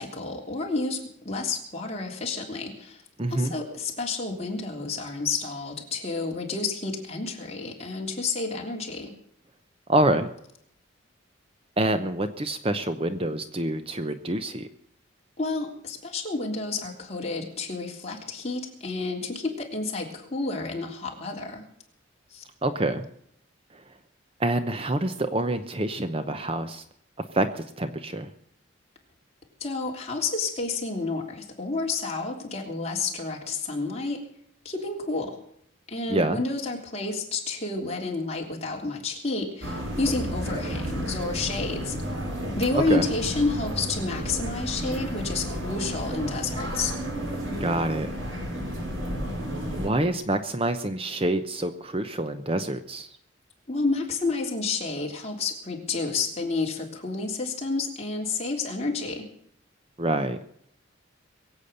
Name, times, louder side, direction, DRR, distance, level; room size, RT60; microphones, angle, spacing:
voice 1, 0.0-3.0 3.3-9.1 15.4-21.6 22.3-22.4 29.6-34.2 34.6-35.4 35.9-42.0 42.5-47.0 53.7-59.2, left 3 dB, 30° left, 0 dB, 3.2 m, -30 dB
voice 2, 3.2-3.5 9.9-10.3 11.8-14.7 22.6-23.0 24.4-26.8 27.3-28.3 36.1-36.4 42.7-43.0 47.6-48.1 49.8-53.1 60.0-60.4, right 1 dB, 30° right, 9 dB, 0.8 m, -26 dB
sound 1, 39.6-49.9, equal, 70° right, 4.8 m, -32 dB
22.5 x 8.4 x 6.8 m, 0.70 s
head